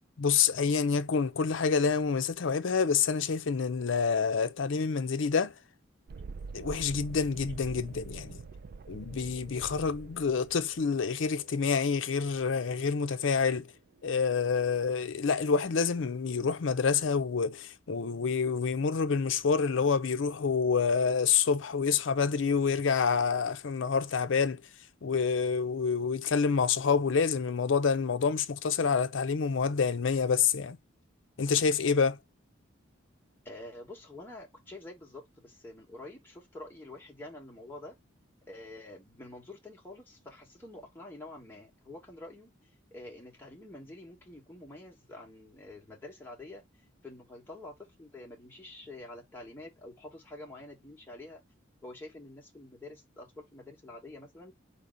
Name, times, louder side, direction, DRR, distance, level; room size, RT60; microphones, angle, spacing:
voice 1, 0.2-5.5 6.5-8.4 8.9-13.7 14.0-24.6 25.0-30.8 31.4-32.2, left 5 dB, 70° left, 0.5 m, -27 dB
Thunderstorm, 6.1-13.5, right 4 dB, 50° right, 0.3 m, -46 dB
voice 2, 33.4-38.0 38.5-42.5 42.9-46.6 47.0-51.4 51.8-54.5, left 2 dB, 10° left, 1.4 m, -47 dB
4.3 x 2.9 x 3.8 m
head